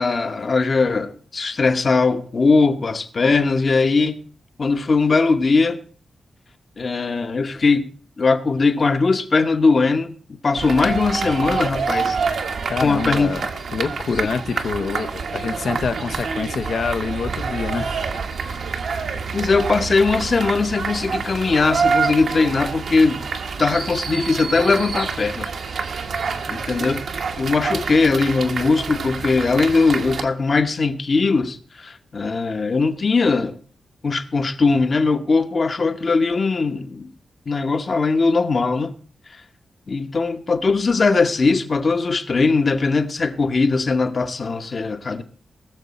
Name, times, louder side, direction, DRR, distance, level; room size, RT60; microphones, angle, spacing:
voice 1, 0.0-4.2 4.6-5.8 6.8-10.1 10.4-12.3 12.8-13.3 19.3-23.3 23.6-25.5 26.5-27.0 27.4-33.6 34.0-37.1 37.5-38.9 39.9-45.2, left 4 dB, 45° left, 1.1 m, -20 dB
sound 1, 10.6-30.2, right 5 dB, 75° right, 1.3 m, -27 dB
voice 2, 12.7-18.1 18.4-18.6, left 5 dB, 70° left, 0.9 m, -26 dB
20.0 x 6.8 x 4.3 m
wide cardioid pair, 100°, 0 cm